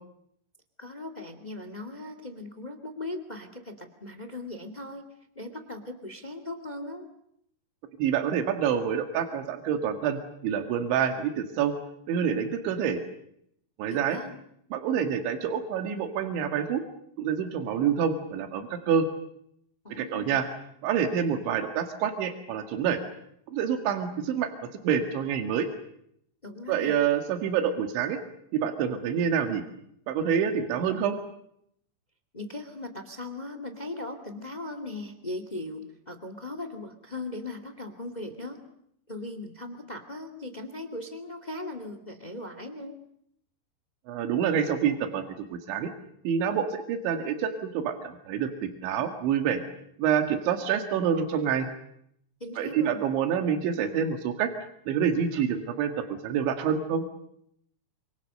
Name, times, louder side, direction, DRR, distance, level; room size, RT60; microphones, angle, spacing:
voice 1, 0.8-5.0 5.3-7.1 13.9-14.4 19.8-20.3 26.4-27.0 32.3-38.6 39.1-43.0 52.4-53.0, left 2 dB, 25° left, 9 dB, 0.8 m, -39 dB
voice 2, 8.0-11.8 12.1-13.0 13.8-14.2 14.7-16.8 17.2-19.1 20.0-20.5 20.8-23.0 23.5-24.5 24.8-25.7 26.7-28.2 28.5-29.6 30.1-31.2 44.1-45.2 45.5-45.9 46.3-49.6 50.0-51.7 52.6-54.5 54.9-55.9 56.2-57.1, right 8 dB, 85° right, 6 dB, 4.2 m, -27 dB
28.0 x 26.5 x 6.7 m, 0.72 s
omnidirectional pair, 5.1 m